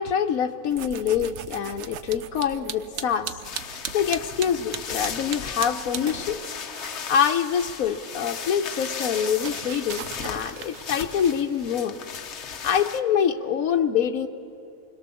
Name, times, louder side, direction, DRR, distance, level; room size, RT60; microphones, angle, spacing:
voice 1, 0.0-3.4 3.9-6.4 7.1-12.0 12.6-14.3, left 8 dB, 85° left, 4 dB, 1.2 m, -25 dB
sound 1, 0.7-6.6 6.9-11.4, right 8 dB, 60° right, 1.0 m, -39 dB
sound 2, 3.4-13.0, left 6 dB, 60° left, 1.2 m, -36 dB
Fire, 6.1-12.0, right 1 dB, 40° right, 5.5 m, -47 dB
27.5 x 21.5 x 6.9 m, 2.7 s
omnidirectional pair, 1.4 m